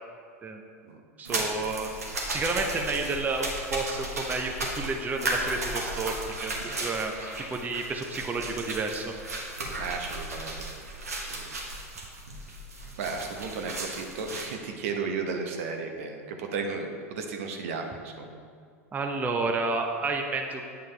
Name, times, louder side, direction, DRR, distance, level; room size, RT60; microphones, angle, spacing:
voice 1, 1.2-1.9 2.3-9.1 18.9-20.7, right 3 dB, 20° right, 3 dB, 0.7 m, -31 dB
sound 1, 1.2-14.5, right 2 dB, 85° right, 1.3 m, -35 dB
voice 2, 9.8-10.7 11.2-11.6 13.0-18.4, right 4 dB, 60° right, 3 dB, 0.9 m, -34 dB
9.0 x 6.8 x 3.3 m, 2.2 s
figure-of-eight pair, 90°, 8 cm